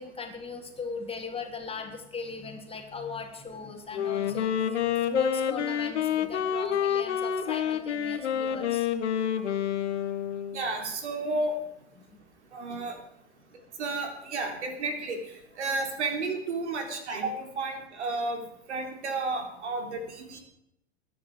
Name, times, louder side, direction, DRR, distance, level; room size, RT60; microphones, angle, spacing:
voice 1, 0.0-4.8 5.1-8.9, left 4 dB, 15° left, 3 dB, 3.3 m, -37 dB
Wind instrument woodwind instrument, 3.9-10.7, left 9 dB, 75° left, 1.8 m, -28 dB
voice 2, 10.5-11.6 12.5-13.0 13.8-15.2 15.6-20.4, right 3 dB, 75° right, 5 dB, 3.7 m, -32 dB
22.5 x 10.0 x 5.0 m, 0.78 s
hypercardioid pair, 100°, 35 cm